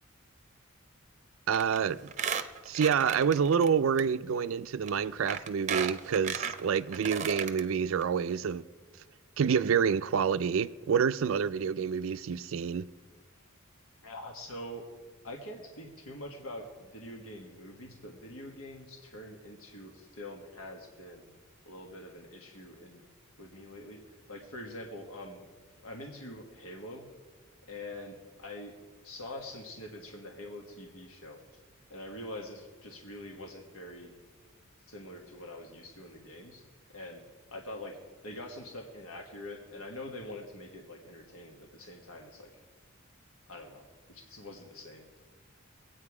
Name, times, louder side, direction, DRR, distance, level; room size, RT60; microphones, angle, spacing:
Squeak, 1.5-1.8 2.1-3.7 4.0-4.1 4.9-5.0 5.3-7.6 8.0-8.1 8.3-8.4, right 6 dB, 35° right, 0.7 m, -34 dB
voice 1, 1.5-2.1 2.7-8.6 9.4-12.9, right 7 dB, 70° right, 0.4 m, -28 dB
voice 2, 14.0-14.8 15.2-21.3 21.7-23.0 23.4-25.4 25.8-27.1 27.7-28.8 29.0-31.4 31.9-34.1 34.9-36.6 36.9-37.2 37.5-38.0 38.2-42.5 43.5-45.0, left 1 dB, 90° left, 1.5 m, -44 dB
22.0 x 8.8 x 4.8 m
head